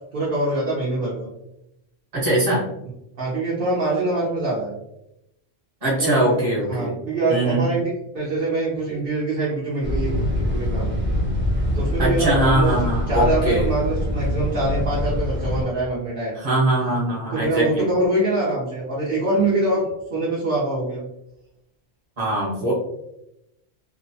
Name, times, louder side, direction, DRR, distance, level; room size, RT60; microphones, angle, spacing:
voice 1, 0.1-1.3 3.2-4.8 6.0-6.4 6.7-10.9 11.7-16.4 17.3-19.9 20.1-21.0, right 2 dB, 60° right, -7 dB, 0.8 m, -24 dB
voice 2, 2.1-2.7 5.8-6.9 7.3-7.7 12.0-13.7 16.4-17.9 22.2-22.7, right 1 dB, 35° right, -5 dB, 1.0 m, -22 dB
sound 1, 9.8-15.6, left 1 dB, 15° right, 0.5 m, -24 dB
2.8 x 2.0 x 2.6 m, 0.85 s
omnidirectional pair, 1.1 m